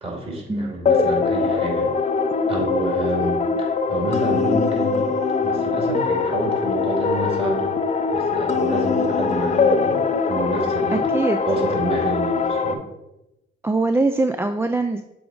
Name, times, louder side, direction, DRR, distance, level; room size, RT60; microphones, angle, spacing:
voice 1, 0.0-1.9 2.5-3.4 3.9-5.1 5.4-7.7 8.1-10.0 10.3-11.1 11.5-12.8, right 2 dB, 30° right, -2 dB, 2.6 m, -28 dB
sound 1, 0.9-12.7, left 4 dB, 35° left, 0.6 m, -22 dB
voice 2, 10.9-11.4 13.6-15.0, right 2 dB, 10° right, 7 dB, 0.3 m, -22 dB
7.0 x 3.8 x 4.7 m, 0.90 s
cardioid pair, 90°, 20 cm